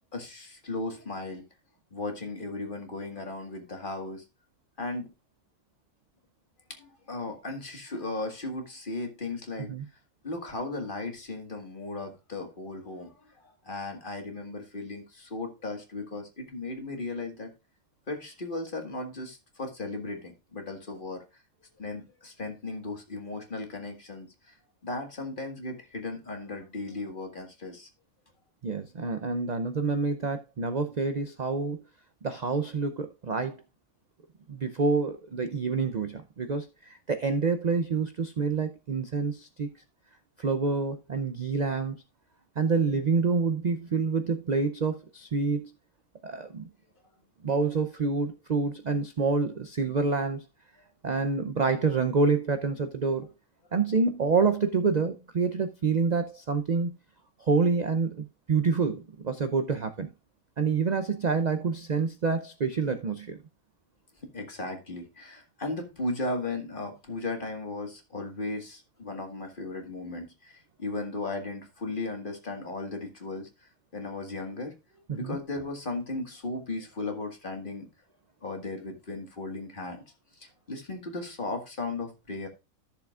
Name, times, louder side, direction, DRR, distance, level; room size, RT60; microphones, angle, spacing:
voice 1, 0.1-1.4 1.9-4.2 4.8-5.1 6.7-9.7 10.2-17.5 18.1-21.4 21.8-24.6 24.8-27.9 64.2-74.7 75.2-77.9 78.4-80.0 80.4-82.5, left 2 dB, 35° left, 1.9 m, -36 dB
voice 2, 28.6-31.8 32.2-33.5 34.5-39.7 40.4-42.0 42.6-45.7 46.2-46.7 47.4-50.4 51.0-53.3 53.7-56.9 57.4-60.1 60.6-63.4 75.1-75.4, right 4 dB, 45° right, 0.6 m, -27 dB
14.0 x 6.9 x 2.4 m
omnidirectional pair, 1.5 m